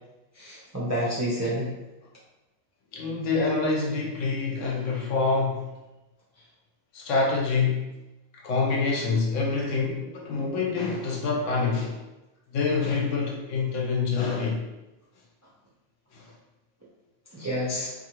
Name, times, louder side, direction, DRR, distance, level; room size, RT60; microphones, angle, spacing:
voice 1, 0.4-1.7 17.3-17.9, equal, 25° right, -7 dB, 0.4 m, -29 dB
voice 2, 2.9-5.7 6.9-7.9 8.4-12.0 12.5-14.6 16.1-16.3, left 4 dB, 80° left, -1 dB, 1.0 m, -26 dB
2.7 x 2.5 x 2.9 m, 1.0 s
omnidirectional pair, 1.3 m